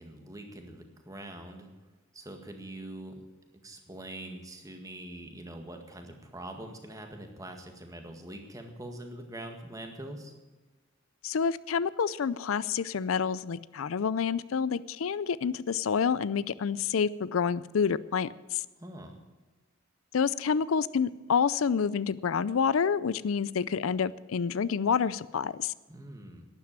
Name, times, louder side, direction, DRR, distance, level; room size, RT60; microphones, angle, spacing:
voice 1, 0.0-1.7 2.1-3.2 3.6-10.3 18.8-19.2 25.9-26.5, right 1 dB, 15° right, 4 dB, 1.8 m, -43 dB
voice 2, 11.2-18.6 20.1-25.7, left 6 dB, 80° left, 18 dB, 0.5 m, -28 dB
12.0 x 10.5 x 8.7 m, 1.2 s
head